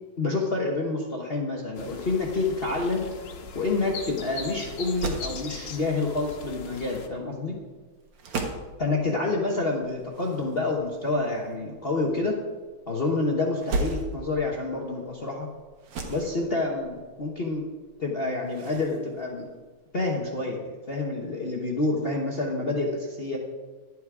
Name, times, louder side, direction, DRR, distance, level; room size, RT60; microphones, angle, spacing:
voice 1, 0.2-3.1 3.5-7.6 8.8-12.4 12.9-15.5 16.1-17.6 18.0-19.4 19.9-20.6 20.9-23.4, left 3 dB, 40° left, 0 dB, 0.9 m, -28 dB
sound 1, 1.7-7.1, left 5 dB, 85° left, 2.0 m, -40 dB
sound 2, 2.7-20.2, right 2 dB, 90° right, 2.2 m, -39 dB
11.5 x 8.3 x 4.8 m, 1.4 s
omnidirectional pair, 2.3 m